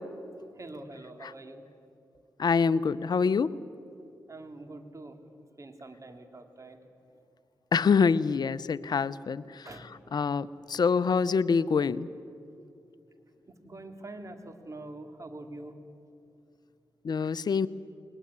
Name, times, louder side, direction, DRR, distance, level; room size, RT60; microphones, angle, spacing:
voice 1, 0.6-1.6 4.3-5.2 5.6-6.8 9.6-9.9 13.6-15.8, right 2 dB, 40° right, 7 dB, 2.7 m, -44 dB
voice 2, 2.4-3.5 7.7-9.7 10.1-12.1 17.0-17.7, left 5 dB, 60° left, 15 dB, 0.7 m, -25 dB
21.0 x 19.0 x 9.9 m, 2.6 s
supercardioid pair, 45°, 8 cm